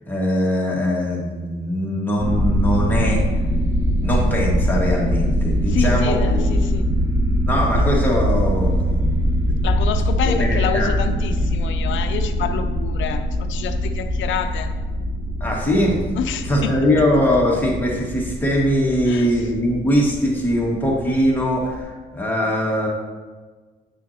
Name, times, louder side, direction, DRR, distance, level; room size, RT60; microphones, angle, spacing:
voice 1, 0.1-3.2 4.0-6.4 7.5-9.2 10.4-10.9 15.4-16.2 16.5-22.9, equal, 10° left, -3 dB, 1.8 m, -21 dB
sound 1, 2.2-21.8, equal, 15° right, 1.7 m, -22 dB
voice 2, 5.6-6.9 9.6-14.7 16.2-16.7 19.1-19.5, left 8 dB, 75° left, 7 dB, 0.6 m, -28 dB
8.5 x 6.2 x 2.9 m, 1.4 s
cardioid pair, 90°, 20 cm